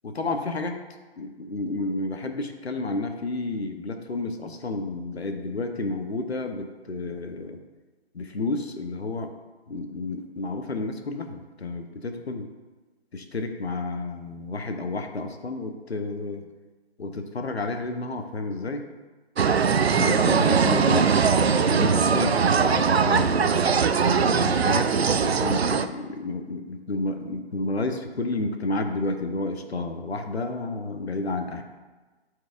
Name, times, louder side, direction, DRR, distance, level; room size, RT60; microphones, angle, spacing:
voice 1, 0.0-0.8 1.2-7.6 8.1-9.3 9.7-12.5 13.1-16.4 17.0-18.9 19.8-23.8 24.3-31.6, left 2 dB, 70° left, 6 dB, 0.9 m, -31 dB
sound 1, 19.4-25.9, right 6 dB, 70° right, 0.5 m, -21 dB
11.5 x 4.7 x 2.5 m, 1.3 s
figure-of-eight pair, 175°, 33 cm